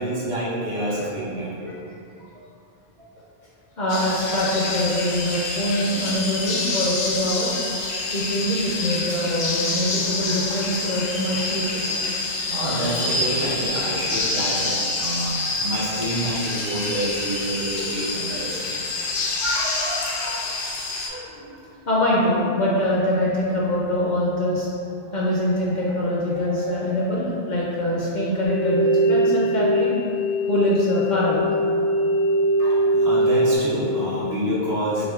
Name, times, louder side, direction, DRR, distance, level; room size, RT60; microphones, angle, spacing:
voice 1, 0.0-1.7 3.0-3.1 8.8-9.1 10.0-10.1 11.9-18.8 19.4-20.4 21.1-21.5 32.6-35.1, right 1 dB, 70° right, -8 dB, 1.2 m, -28 dB
voice 2, 3.8-7.9 8.1-11.7 19.2-19.3 21.9-24.7 25.1-29.9 30.5-31.5, left 1 dB, 55° left, -6 dB, 0.5 m, -24 dB
sound 1, 3.9-21.1, left 3 dB, 85° left, 0.9 m, -27 dB
sound 2, 28.4-33.6, right 1 dB, 35° right, 0.6 m, -21 dB
5.7 x 2.1 x 2.3 m, 2.7 s
omnidirectional pair, 1.1 m